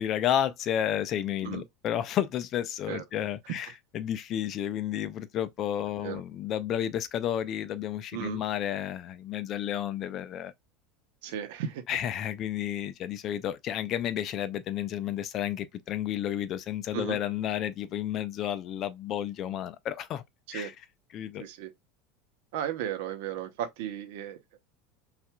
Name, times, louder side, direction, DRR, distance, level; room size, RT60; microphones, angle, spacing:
voice 1, 0.0-3.7 3.9-10.5 11.9-20.2 20.5-20.7 21.1-21.5, left 10 dB, 40° left, 0.4 m, -31 dB
voice 2, 11.2-11.8 16.9-17.2 20.5-20.7 21.4-21.7 22.5-24.6, right 10 dB, 75° right, 0.8 m, -35 dB
5.7 x 2.5 x 2.2 m
supercardioid pair, 145°, 0 cm